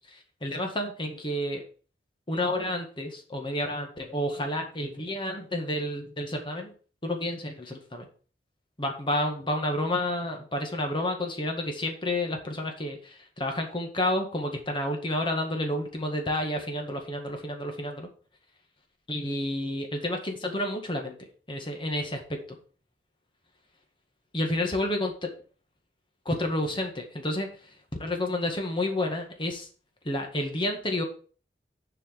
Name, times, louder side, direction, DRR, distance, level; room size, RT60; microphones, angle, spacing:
voice 1, 0.1-1.6 2.3-6.7 7.0-8.1 8.8-18.1 19.1-21.2 21.5-22.4 24.3-25.3 26.3-27.5 28.0-29.7 30.1-31.0, left 1 dB, 30° left, 3 dB, 1.8 m, -30 dB
7.6 x 4.9 x 6.3 m, 0.40 s
head